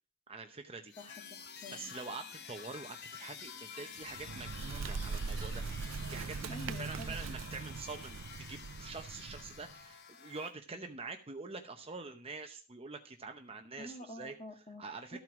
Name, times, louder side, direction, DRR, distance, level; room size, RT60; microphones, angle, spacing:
voice 1, 0.3-0.9 1.7-14.3 14.8-15.2, right 3 dB, 25° right, 5 dB, 0.8 m, -46 dB
sound 1, 0.9-10.5, left 7 dB, 50° left, 0.8 m, -50 dB
voice 2, 1.0-1.9 6.5-7.4 13.8-14.8 15.1-15.2, left 1 dB, 30° left, 1 dB, 2.5 m, -48 dB
Bird, 4.0-9.7, right 4 dB, 65° right, 0.5 m, -41 dB
13.5 x 4.7 x 6.0 m, 0.35 s
head